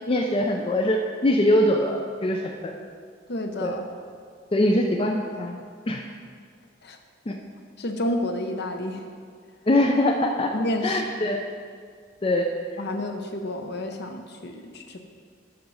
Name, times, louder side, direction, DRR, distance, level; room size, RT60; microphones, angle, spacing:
voice 1, 0.1-2.7 3.6-3.7 4.5-5.6 5.9-6.0 7.3-7.4 9.7-10.5 10.8-11.4 12.2-12.5, left 1 dB, 30° left, 2 dB, 0.4 m, -22 dB
voice 2, 3.3-3.8 6.8-7.0 7.8-9.0 10.5-11.0 12.8-15.0, left 1 dB, 55° left, 5 dB, 0.7 m, -30 dB
7.8 x 6.0 x 5.4 m, 2.1 s
head